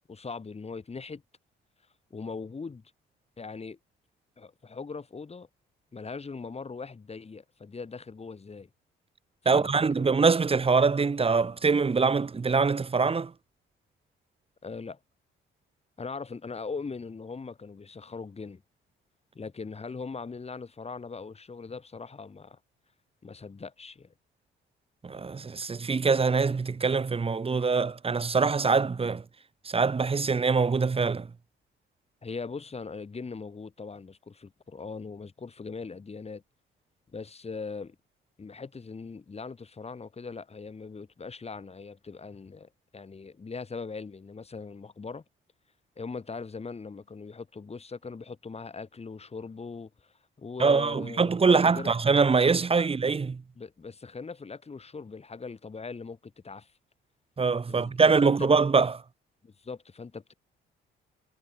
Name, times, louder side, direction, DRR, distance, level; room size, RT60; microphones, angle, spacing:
voice 1, 0.1-1.2 2.1-2.8 3.4-3.8 4.4-5.5 5.9-8.7 9.4-10.1 14.6-15.0 16.0-18.6 19.3-22.6 23.2-24.1 32.2-36.4 37.1-38.0 38.4-45.2 46.0-51.9 53.6-56.7 57.7-58.5 59.4-60.3, left 4 dB, 30° left, 7.5 m, -40 dB
voice 2, 9.5-13.3 25.0-29.2 29.7-31.3 50.6-53.4 57.4-59.0, right 4 dB, 30° right, 1.6 m, -24 dB
cardioid pair, 90°, 20 cm